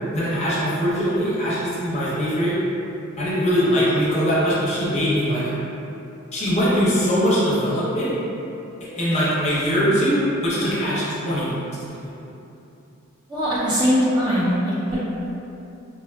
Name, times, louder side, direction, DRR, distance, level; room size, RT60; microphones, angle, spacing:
voice 1, 0.1-2.6 3.2-5.6 6.3-8.1 9.0-11.6 11.8-12.1, equal, 30° left, -8 dB, 0.6 m, -21 dB
voice 2, 13.3-15.0, equal, 20° right, -9 dB, 0.5 m, -21 dB
3.4 x 2.3 x 2.2 m, 2.8 s
head